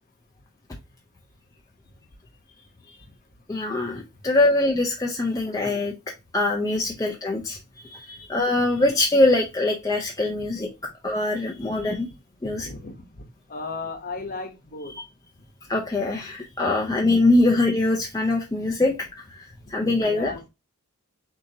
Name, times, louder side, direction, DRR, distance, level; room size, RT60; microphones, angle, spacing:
voice 1, 3.5-5.9 6.3-7.6 7.9-10.7 11.0-12.1 12.4-12.7 14.9-15.1 15.7-19.0 19.3-19.4 19.7-20.3, left 2 dB, 15° left, 0.5 m, -23 dB
voice 2, 12.4-13.2 13.5-14.9 20.0-20.5, left 3 dB, 40° left, 1.0 m, -35 dB
6.5 x 2.8 x 2.7 m
head